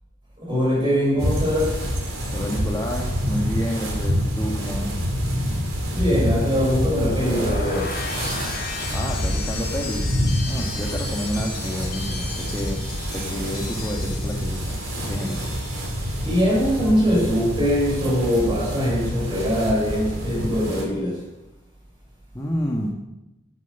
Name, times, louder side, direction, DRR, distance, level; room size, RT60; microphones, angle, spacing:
voice 1, 0.4-1.9 5.9-8.0 16.2-21.3, equal, 25° right, 6.4 m, -22 dB
sound 1, 1.2-20.8, equal, 75° right, 4.3 m, -27 dB
voice 2, 2.3-5.1 8.9-10.2 10.4-15.5 22.3-22.9, equal, 15° left, 1.5 m, -30 dB
sound 2, 6.8-16.9 17.2-17.6, left 4 dB, 50° left, 3.9 m, -36 dB
12.5 x 12.0 x 7.0 m
head